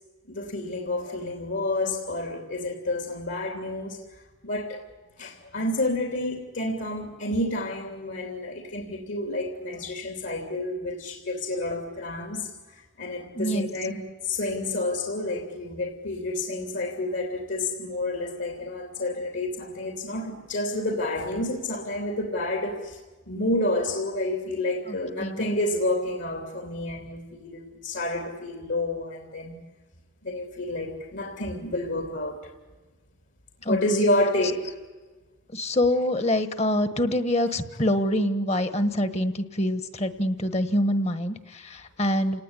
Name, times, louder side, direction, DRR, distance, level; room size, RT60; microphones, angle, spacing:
voice 1, 0.3-4.0 4.4-4.8 5.2-23.0 23.3-29.6 30.2-32.4 33.7-34.7, left 1 dB, 65° left, 3.2 m, -29 dB
voice 2, 13.3-13.7 24.9-25.6 33.6-34.0 35.5-42.4, left 1 dB, 30° left, 1.4 m, -25 dB
29.0 x 19.0 x 9.9 m
head